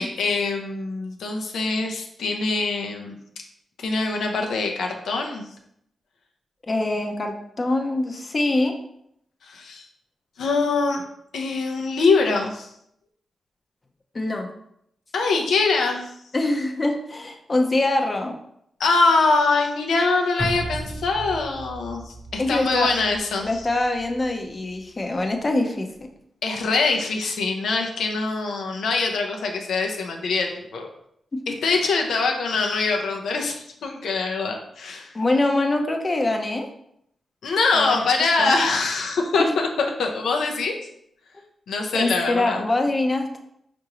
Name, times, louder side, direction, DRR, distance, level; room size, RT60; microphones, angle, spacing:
voice 1, 0.0-3.1 3.8-5.5 9.4-9.9 10.4-11.0 11.3-12.7 15.1-16.1 18.8-23.7 26.4-30.9 31.5-35.1 37.4-40.7 41.7-42.6, left 3 dB, 80° left, 2 dB, 0.6 m, -23 dB
voice 2, 6.7-8.7 14.1-14.5 16.3-18.3 22.4-22.9 23.4-25.9 31.3-31.4 35.1-36.7 37.7-38.1 38.3-38.5 39.4-39.6 41.9-43.4, left 2 dB, 40° left, 4 dB, 0.6 m, -24 dB
sound 1, 20.4-24.8 25.2-25.3, right 1 dB, 10° right, 0.6 m, -35 dB
4.5 x 2.5 x 2.9 m, 0.73 s
supercardioid pair, 45°, 0 cm